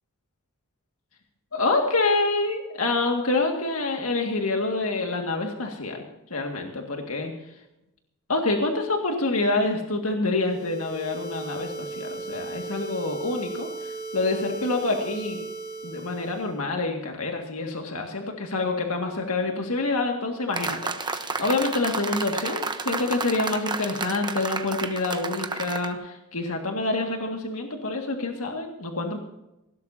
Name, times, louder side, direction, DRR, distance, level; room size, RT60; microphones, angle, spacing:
voice 1, 1.5-6.0 6.3-7.3 8.3-15.4 15.8-29.2, left 2 dB, 75° left, 2 dB, 2.1 m, -27 dB
sound 1, 10.4-16.6, right 3 dB, 50° left, 6.8 m, -37 dB
sound 2, 20.5-25.9, right 4 dB, 20° right, 1.0 m, -31 dB
19.5 x 17.5 x 2.8 m, 0.90 s
head